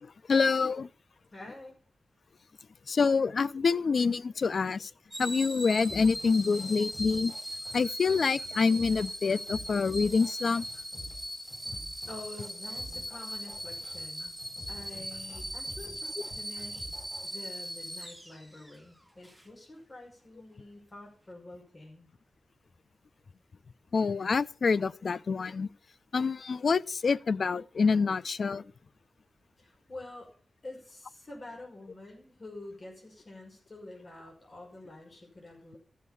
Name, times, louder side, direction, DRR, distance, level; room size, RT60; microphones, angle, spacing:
voice 1, 0.3-0.9 2.9-4.9 5.2-7.3 7.7-10.6 23.9-25.7 26.1-28.6, left 5 dB, 60° left, 0.4 m, -26 dB
voice 2, 1.3-1.8 12.1-14.3 14.7-16.8 17.2-22.1 29.6-30.3 30.6-35.8, left 2 dB, 40° left, 5.6 m, -47 dB
sound 1, 5.1-18.8 19.2-19.4, equal, ahead, 2.0 m, -39 dB
sound 2, 5.8-17.3, equal, 15° left, 7.6 m, -48 dB
13.5 x 6.6 x 7.0 m
wide cardioid pair, 95°, 0 cm